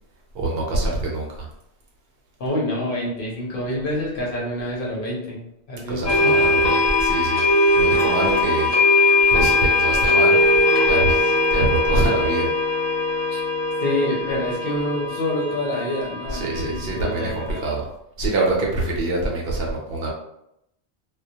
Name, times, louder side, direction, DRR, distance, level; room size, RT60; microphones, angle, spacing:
voice 1, 0.3-1.5 5.9-7.5 7.8-8.7 9.3-10.4 10.8-12.5 16.3-17.8 18.2-20.1, right 2 dB, 65° right, -2 dB, 0.7 m, -24 dB
voice 2, 2.4-5.4 5.7-6.3 13.3-13.4 13.8-17.7, left 1 dB, 55° left, -4 dB, 0.8 m, -27 dB
sound 1, 6.0-17.7, left 2 dB, 40° left, 0.4 m, -21 dB
Wind instrument woodwind instrument, 10.3-16.1, left 1 dB, 15° right, 0.7 m, -27 dB
2.2 x 2.1 x 2.7 m, 0.81 s
omnidirectional pair, 1.2 m